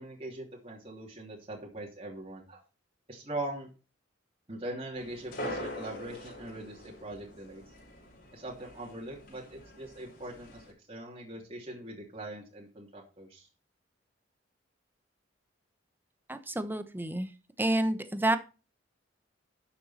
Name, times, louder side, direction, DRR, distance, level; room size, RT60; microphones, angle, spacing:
voice 1, 0.0-2.6 3.1-3.7 4.5-7.6 8.3-13.5, right 1 dB, 30° right, -2 dB, 2.9 m, -41 dB
sound 1, 5.0-10.7, equal, 50° left, 5.9 m, -44 dB
voice 2, 16.3-17.3 17.6-18.4, right 1 dB, 10° right, 10 dB, 1.0 m, -29 dB
12.0 x 7.2 x 4.3 m, 0.32 s
head